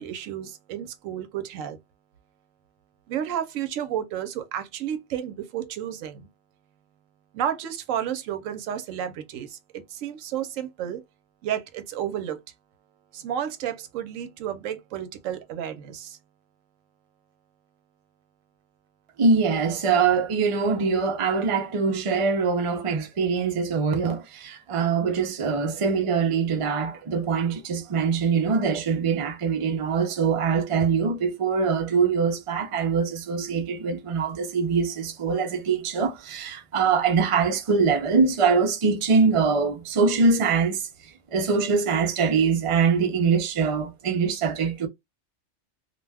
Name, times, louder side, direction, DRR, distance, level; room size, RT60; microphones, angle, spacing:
voice 1, 0.0-1.8 3.1-6.3 7.3-11.0 11.4-12.4 13.1-16.2, right 10 dB, 80° right, 0.9 m, -31 dB
voice 2, 19.2-40.8 41.3-44.9, right 5 dB, 55° right, 0.3 m, -23 dB
2.4 x 2.2 x 3.3 m
omnidirectional pair, 1.3 m